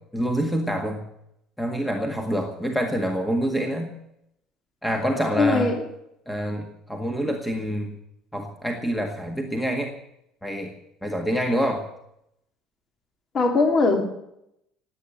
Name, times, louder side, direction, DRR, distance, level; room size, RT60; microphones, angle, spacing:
voice 1, 0.1-1.0 1.6-4.0 4.8-5.7 6.3-8.0 8.3-10.0 10.4-10.7 11.0-11.9, equal, 5° left, 1.8 m, -26 dB
voice 2, 5.4-5.8 13.3-14.0, left 3 dB, 35° left, 2.8 m, -20 dB
18.0 x 8.6 x 9.2 m
cardioid pair, 130°, 0 cm